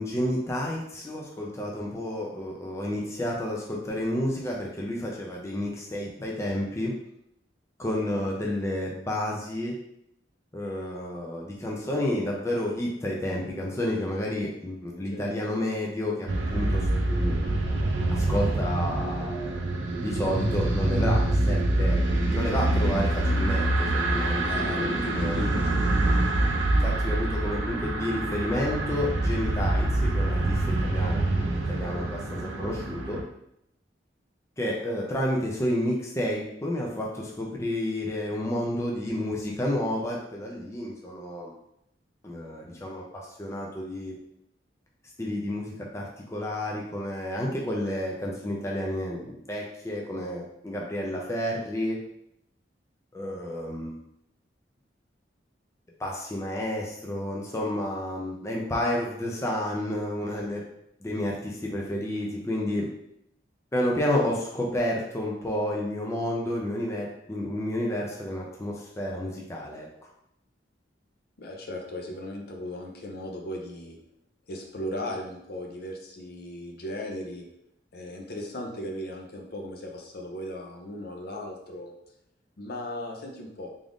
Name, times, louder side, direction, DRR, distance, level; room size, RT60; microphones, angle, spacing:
voice 1, 0.0-6.9 7.8-9.8 10.5-17.4 18.1-21.2 21.5-22.0 22.3-25.4 26.8-31.2 31.7-33.2 34.6-41.5 42.2-44.2 45.2-52.0 53.1-54.0 56.0-60.7 61.0-62.9 63.7-69.9, left 1 dB, 15° left, -2 dB, 0.5 m, -30 dB
sound 1, 16.3-33.2, right 2 dB, 90° right, 0.5 m, -26 dB
voice 2, 24.4-25.9 71.4-74.0 74.5-77.5 77.9-81.9 82.6-83.7, left 1 dB, 55° left, 1 dB, 0.6 m, -37 dB
3.7 x 2.5 x 3.5 m, 0.77 s
head